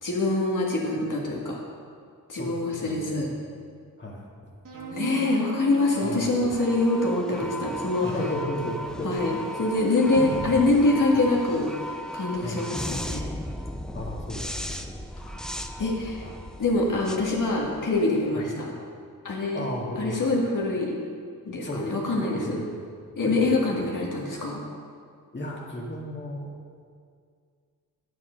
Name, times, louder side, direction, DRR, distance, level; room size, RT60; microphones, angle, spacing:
voice 1, 0.0-1.6 2.3-3.3 4.9-8.1 9.0-13.3 15.2-15.5 15.8-16.3 16.6-18.7 19.2-19.6 20.0-21.0 21.4-22.6 23.2-24.6, left 2 dB, 60° left, -3 dB, 1.9 m, -25 dB
voice 2, 2.4-3.1 4.0-4.3 6.0-6.3 7.3-7.4 8.0-9.3 9.9-10.3 12.4-12.6 13.9-14.9 16.2-16.5 18.3-18.5 19.5-20.3 21.6-22.8 23.2-23.7 25.3-26.5, left 1 dB, 30° left, -3 dB, 2.0 m, -34 dB
sound 1, 4.6-12.1, right 3 dB, 60° right, 1.7 m, -38 dB
sound 2, 5.8-18.2, equal, ahead, 0.6 m, -37 dB
9.5 x 9.0 x 5.2 m, 2.1 s
cardioid pair, 80°, 36 cm